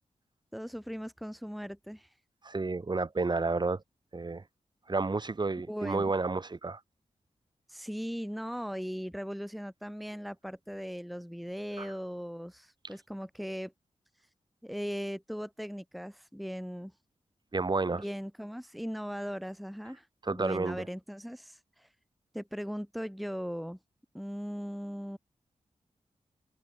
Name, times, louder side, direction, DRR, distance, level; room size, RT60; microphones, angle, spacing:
voice 1, 0.5-2.1 5.7-6.1 7.7-13.7 14.6-16.9 17.9-21.9 22.3-23.8 24.1-25.2, equal, ahead, 2.3 m, -38 dB
voice 2, 2.4-3.8 4.1-4.4 4.9-6.8 11.8-11.9 17.5-18.0 20.2-20.8, right 3 dB, 35° right, 4.0 m, -31 dB
wide cardioid pair, 90°, 12 cm